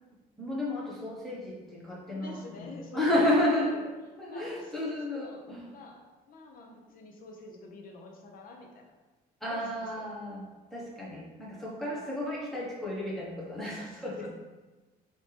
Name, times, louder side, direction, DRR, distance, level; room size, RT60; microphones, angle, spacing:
voice 1, 0.4-3.7 4.2-5.7 9.4-10.4 10.7-14.3, left 1 dB, ahead, -6 dB, 1.3 m, -32 dB
voice 2, 2.1-3.3 3.6-3.9 4.3-8.9 9.5-10.1 11.6-12.0 13.6-14.3, left 3 dB, 55° left, 1 dB, 0.8 m, -48 dB
4.3 x 2.9 x 3.4 m, 1.2 s
cardioid pair, 110°, 17 cm